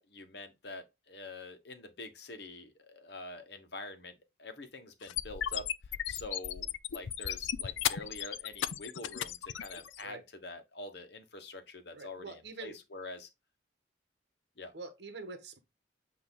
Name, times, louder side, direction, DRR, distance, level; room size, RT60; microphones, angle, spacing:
voice 1, 0.0-5.7 6.1-13.3 14.6-14.7, left 2 dB, 60° left, 1.3 m, -46 dB
sound 1, 5.0-10.0, left 10 dB, 80° left, 0.5 m, -35 dB
voice 2, 11.9-12.8 14.7-15.6, right 3 dB, 60° right, 1.4 m, -45 dB
8.3 x 3.0 x 3.7 m
head